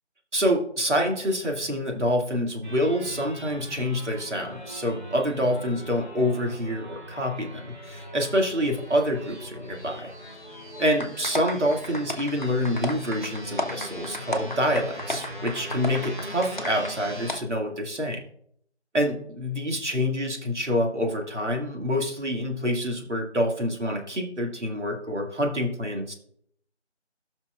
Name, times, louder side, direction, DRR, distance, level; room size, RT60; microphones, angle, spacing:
voice 1, 0.3-10.1 10.8-18.2 18.9-26.1, equal, 75° right, 1 dB, 2.1 m, -27 dB
sound 1, 2.6-17.4, equal, 45° right, 1.8 m, -40 dB
sound 2, 11.0-16.9 17.3-17.4, left 1 dB, 40° left, 0.8 m, -33 dB
17.0 x 5.9 x 2.4 m, 0.66 s
figure-of-eight pair, 175°, 35 cm